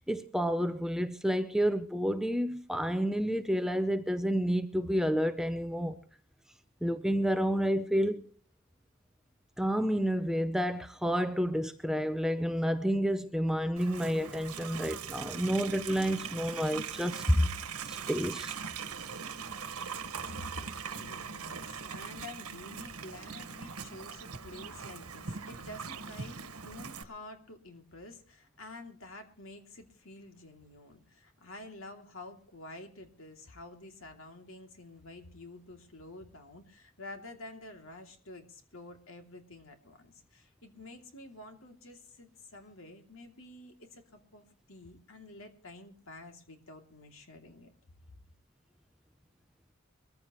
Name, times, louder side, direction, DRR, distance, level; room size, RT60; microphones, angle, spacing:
voice 1, 0.0-6.0 6.8-8.2 9.6-17.5 17.9-18.5, equal, ahead, 0.6 m, -29 dB
Livestock farm animals working animals, 13.8-27.0, right 6 dB, 85° right, 1.5 m, -41 dB
voice 2, 20.2-20.7 21.0-47.7, left 2 dB, 65° left, 2.8 m, -49 dB
22.5 x 14.5 x 3.1 m
head